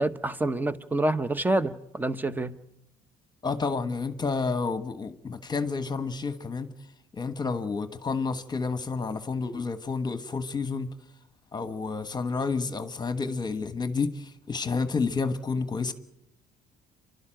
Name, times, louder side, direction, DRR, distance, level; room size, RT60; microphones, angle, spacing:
voice 1, 0.0-2.5, right 2 dB, 10° right, 0.9 m, -27 dB
voice 2, 3.4-6.7 7.1-10.9 11.5-15.9, left 4 dB, 25° left, 1.3 m, -30 dB
28.0 x 12.5 x 9.0 m
cardioid pair, 110°, 17 cm